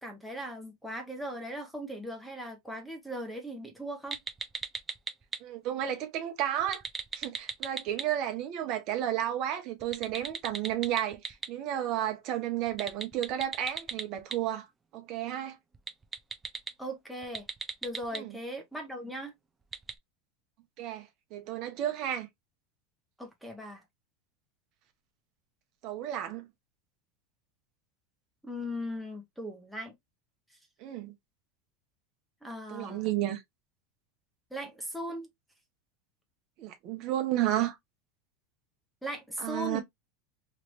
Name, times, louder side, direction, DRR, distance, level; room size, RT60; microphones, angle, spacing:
voice 1, 0.0-4.2 16.8-17.5 17.8-19.3 23.2-23.8 28.4-29.9 32.4-33.1 34.5-35.3 39.0-39.8, equal, ahead, 1.1 m, -38 dB
sound 1, 4.1-5.4 6.6-8.0 9.8-11.5 12.7-14.3 15.7-16.7 17.2-18.2 19.7-19.9, right 4 dB, 15° right, 0.7 m, -35 dB
voice 2, 5.4-6.8 7.1-14.7 14.9-15.6 18.1-18.3 20.8-22.3 25.8-26.5 30.8-31.1 32.7-33.4 36.6-37.7 39.4-39.8, right 12 dB, 55° right, 1.0 m, -32 dB
3.2 x 2.9 x 2.6 m
supercardioid pair, 125°, 0 cm